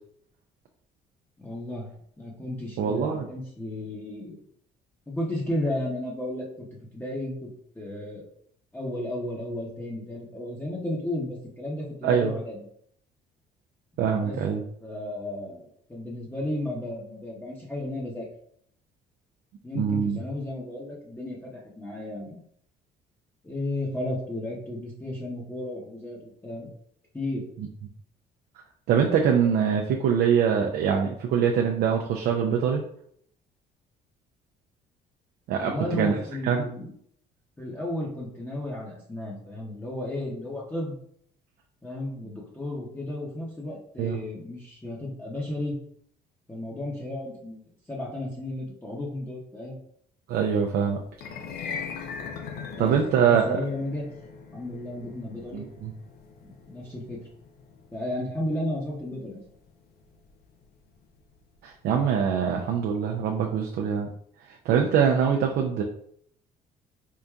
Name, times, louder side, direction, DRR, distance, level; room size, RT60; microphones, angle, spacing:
voice 1, 1.4-1.9 2.2-4.4 5.1-6.7 6.9-7.5 7.7-8.3 8.7-12.7 14.2-14.3 14.8-18.3 19.6-22.4 23.4-26.7 27.1-27.4 35.6-36.9 37.6-40.9 41.8-45.8 46.5-47.6 47.9-49.8 52.8-54.0 54.5-55.6 56.4-57.2 57.9-59.4, left 1 dB, 10° left, -5 dB, 0.8 m, -33 dB
voice 2, 2.8-3.3 12.0-12.3 14.0-14.6 19.7-20.2 28.9-32.8 35.5-36.1 36.4-36.7 44.0-44.2 50.3-51.0 52.8-53.6 55.5-55.9 61.6-64.1 64.5-65.8, right 7 dB, 70° right, 2 dB, 0.4 m, -23 dB
sound 1, 51.1-61.4, left 6 dB, 65° left, 0.5 m, -41 dB
4.6 x 2.6 x 2.3 m, 0.67 s
cardioid pair, 110°, 17 cm